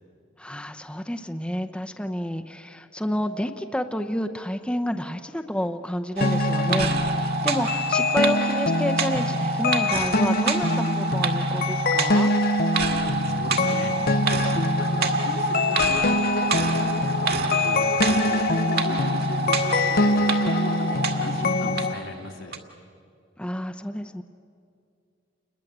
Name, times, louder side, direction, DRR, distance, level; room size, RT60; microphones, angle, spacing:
voice 1, 0.4-12.3 23.4-24.2, equal, 5° left, 6 dB, 0.8 m, -29 dB
sound 1, 6.2-21.9, left 2 dB, 50° left, 0.8 m, -24 dB
sound 2, 6.2-22.1 22.5-22.6, right 4 dB, 55° right, 2.2 m, -28 dB
voice 2, 12.8-13.9 14.4-16.1 16.5-18.4 18.8-22.6, left 1 dB, 80° left, 1 dB, 2.9 m, -38 dB
29.0 x 21.5 x 8.1 m, 2.4 s
head